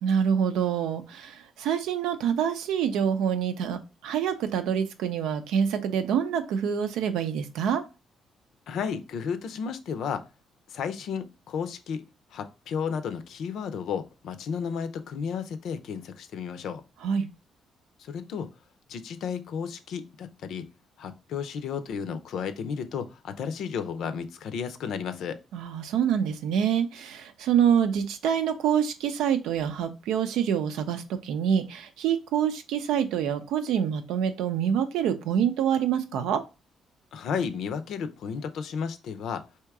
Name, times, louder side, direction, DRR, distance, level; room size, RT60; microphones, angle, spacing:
voice 1, 0.0-7.8 17.0-17.3 25.5-36.4, right 8 dB, 90° right, 9 dB, 0.6 m, -26 dB
voice 2, 8.7-10.2 10.7-12.0 12.3-16.8 18.0-18.5 18.9-20.7 21.0-25.4 37.1-39.4, left 6 dB, 75° left, 10 dB, 0.5 m, -33 dB
3.5 x 2.8 x 4.6 m, 0.29 s
cardioid pair, 90°, 0 cm